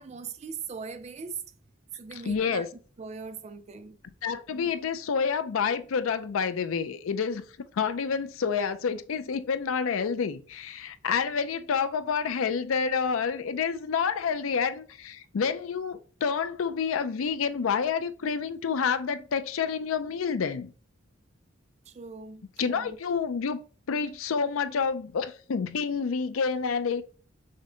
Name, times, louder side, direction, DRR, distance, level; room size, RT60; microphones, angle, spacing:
voice 1, 0.0-1.4 1.9-2.7 3.0-4.0 4.5-4.8 21.9-23.0, right 5 dB, 35° right, 0.4 m, -40 dB
voice 2, 2.2-2.7 4.2-7.5 7.7-20.7 22.6-23.6 23.9-27.0, left 6 dB, 75° left, 0.4 m, -28 dB
6.4 x 2.2 x 3.8 m
head